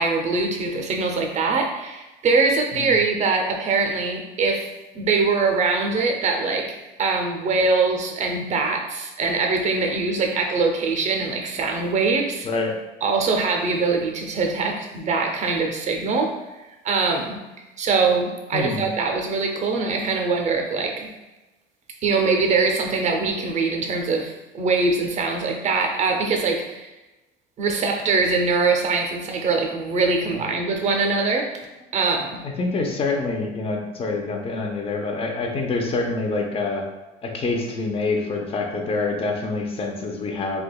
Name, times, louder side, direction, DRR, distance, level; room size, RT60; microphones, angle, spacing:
voice 1, 0.0-6.7 7.0-12.5 13.0-16.4 16.8-17.4 17.8-21.1 22.0-26.9 27.6-31.5 31.9-32.4, right 4 dB, 40° right, 3 dB, 0.5 m, -23 dB
voice 2, 12.4-12.8 18.5-18.9 30.3-30.4 32.4-36.8 37.2-40.6, left 3 dB, 30° left, 2 dB, 0.5 m, -26 dB
3.4 x 2.8 x 2.2 m, 1.1 s
cardioid pair, 120°, 19 cm